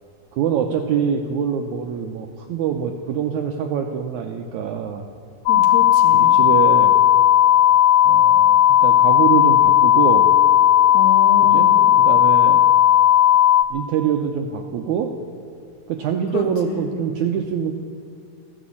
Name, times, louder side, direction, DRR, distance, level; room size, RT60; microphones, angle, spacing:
voice 1, 0.3-5.0 6.1-7.0 8.0-10.3 11.4-11.7 12.0-12.6 13.7-15.1 15.9-17.7, right 8 dB, 80° right, 4 dB, 1.7 m, -24 dB
sound 1, 5.5-13.6, left 11 dB, 85° left, 1.7 m, -14 dB
voice 2, 5.5-6.5 10.9-11.9 16.3-16.9, left 5 dB, 60° left, 4 dB, 2.1 m, -29 dB
15.0 x 11.5 x 8.6 m, 2.5 s
omnidirectional pair, 4.2 m